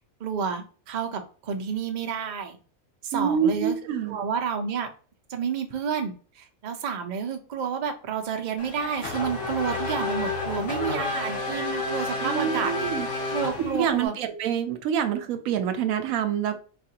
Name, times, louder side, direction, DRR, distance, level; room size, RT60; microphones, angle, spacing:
voice 1, 0.2-2.6 3.0-3.8 4.1-4.9 5.3-12.9 13.3-14.1, right 6 dB, 55° right, 0.5 m, -30 dB
voice 2, 3.1-4.2 12.2-13.1 13.7-16.6, right 8 dB, 80° right, 1.0 m, -26 dB
Race car auto racing / Accelerating revving vroom, 8.6-14.1, left 2 dB, 60° left, 1.3 m, -30 dB
4.3 x 2.4 x 2.7 m
omnidirectional pair, 1.4 m